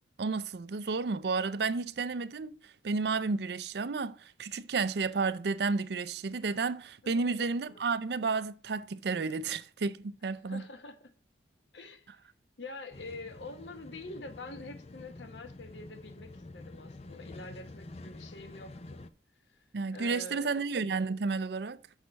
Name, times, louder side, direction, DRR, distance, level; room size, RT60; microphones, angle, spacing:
voice 1, 0.2-10.6 19.7-21.8, right 4 dB, 70° right, 0.5 m, -32 dB
voice 2, 7.0-7.9 10.5-11.1 11.7-12.2 12.6-19.1 19.5-20.6, left 2 dB, 85° left, 1.1 m, -46 dB
sound 1, 12.9-19.1, left 2 dB, 35° left, 0.5 m, -48 dB
6.5 x 6.1 x 5.2 m
head